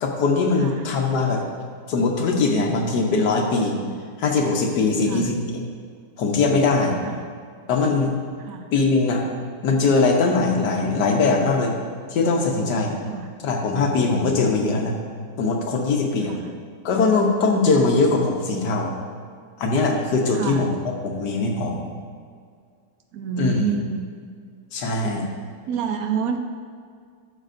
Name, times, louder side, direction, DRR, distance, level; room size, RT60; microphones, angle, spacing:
voice 1, 0.0-1.4 1.9-3.8 4.2-5.4 6.2-7.0 7.7-8.1 8.7-9.3 9.6-11.7 12.1-12.9 13.4-15.0 15.4-16.4 16.8-18.9 19.6-21.9 23.4-23.7 24.7-25.3, left 3 dB, 75° left, 1 dB, 1.5 m, -21 dB
voice 2, 23.1-24.1 25.7-26.4, right 7 dB, 65° right, 6 dB, 1.0 m, -28 dB
11.5 x 6.5 x 2.6 m, 2.1 s
omnidirectional pair, 1.8 m